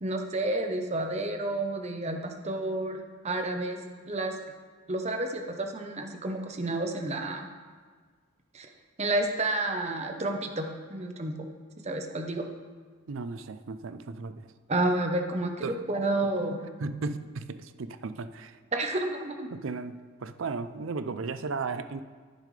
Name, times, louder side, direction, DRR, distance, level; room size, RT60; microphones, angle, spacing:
voice 1, 0.0-4.4 4.9-7.5 8.5-8.7 9.0-11.3 11.8-12.5 14.7-16.6 18.7-19.5, right 2 dB, 30° right, 4 dB, 0.9 m, -30 dB
voice 2, 13.1-14.5 15.6-15.8 16.8-18.6 19.5-22.0, right 4 dB, 70° right, 12 dB, 0.5 m, -35 dB
10.5 x 10.0 x 3.3 m, 1.6 s
head